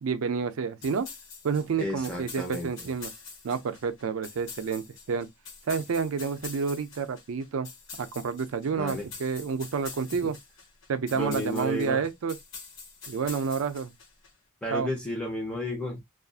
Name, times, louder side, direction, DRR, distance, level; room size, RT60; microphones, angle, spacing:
voice 1, 0.0-1.1 1.4-3.1 3.4-5.3 5.7-7.7 8.0-10.4 10.9-12.3 13.1-13.9 14.7-14.9, right 5 dB, 65° right, 0.4 m, -29 dB
sound 1, 0.8-14.3, left 4 dB, 65° left, 0.9 m, -45 dB
voice 2, 1.8-2.7 8.7-9.1 10.2-10.3 11.2-12.0 14.6-16.0, equal, 5° left, 0.7 m, -32 dB
2.5 x 2.4 x 2.3 m
head